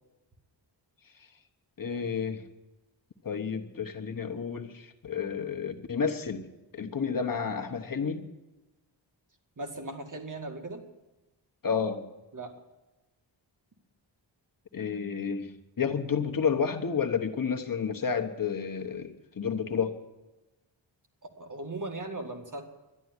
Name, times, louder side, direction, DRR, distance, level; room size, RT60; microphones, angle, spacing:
voice 1, 1.8-2.5 3.2-6.5 6.7-8.3 11.6-12.1 14.7-15.5 15.8-20.0, left 6 dB, 45° left, 4 dB, 1.1 m, -31 dB
voice 2, 9.6-10.8 12.3-12.5 21.2-22.7, right 2 dB, 40° right, 3 dB, 2.1 m, -38 dB
12.0 x 11.0 x 9.6 m, 1.1 s
wide cardioid pair, 130°, 46 cm